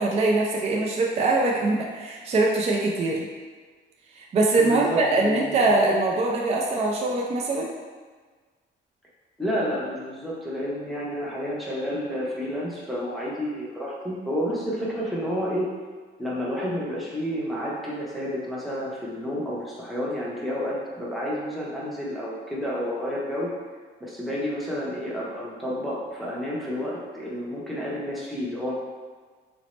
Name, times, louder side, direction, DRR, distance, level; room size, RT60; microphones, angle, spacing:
voice 1, 0.0-3.3 4.1-7.7, right 2 dB, 35° right, -2 dB, 0.3 m, -23 dB
voice 2, 4.6-5.7 9.4-15.7 16.2-23.5 24.0-28.7, equal, ahead, -7 dB, 0.7 m, -30 dB
2.7 x 2.0 x 3.0 m, 1.5 s
cardioid pair, 90°, 20 cm